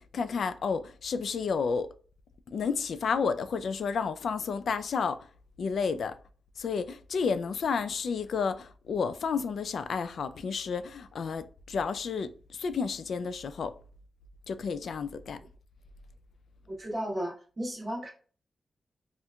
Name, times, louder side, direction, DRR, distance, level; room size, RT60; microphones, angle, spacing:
voice 1, 0.0-1.9 2.5-5.2 5.6-6.1 6.6-13.7 14.5-15.4, left 5 dB, 75° left, 0.3 m, -31 dB
voice 2, 16.7-18.1, equal, 30° right, 1.1 m, -34 dB
4.3 x 2.5 x 2.2 m
wide cardioid pair, 110°, 0 cm